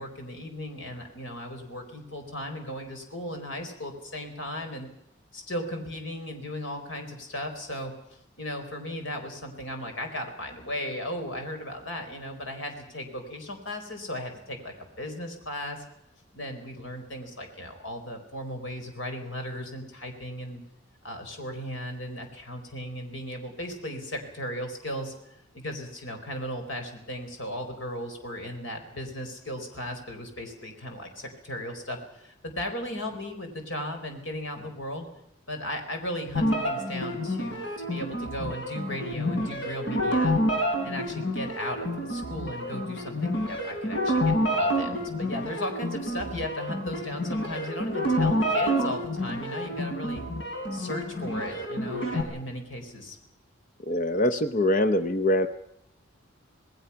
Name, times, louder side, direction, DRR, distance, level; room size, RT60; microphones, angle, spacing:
voice 1, 0.0-4.9 5.3-15.8 16.3-20.6 21.0-35.1 35.5-40.4 40.8-50.2 50.7-53.2, left 1 dB, 75° left, 4 dB, 4.4 m, -36 dB
sound 1, 36.4-52.2, equal, 60° left, 4.1 m, -28 dB
voice 2, 53.9-55.5, left 1 dB, 40° left, 10 dB, 0.8 m, -23 dB
27.0 x 19.5 x 5.8 m, 0.81 s
head